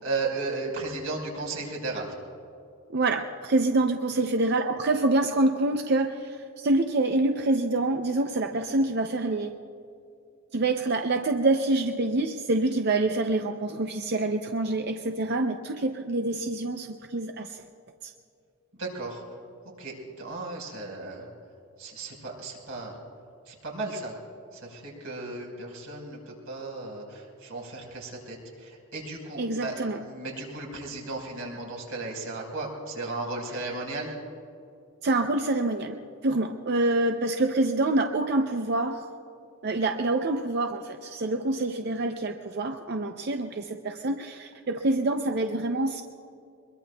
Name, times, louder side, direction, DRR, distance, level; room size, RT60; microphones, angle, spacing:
voice 1, 0.0-2.1 18.8-19.2 19.8-21.3 21.8-23.0 23.5-24.1 24.5-26.2 26.5-34.1, right 3 dB, 90° right, -2 dB, 4.6 m, -35 dB
voice 2, 2.9-9.6 10.5-17.6 18.0-18.1 29.4-30.0 35.0-39.1 39.6-46.0, right 2 dB, 50° right, 5 dB, 0.6 m, -26 dB
23.5 x 22.0 x 2.3 m, 2.5 s
head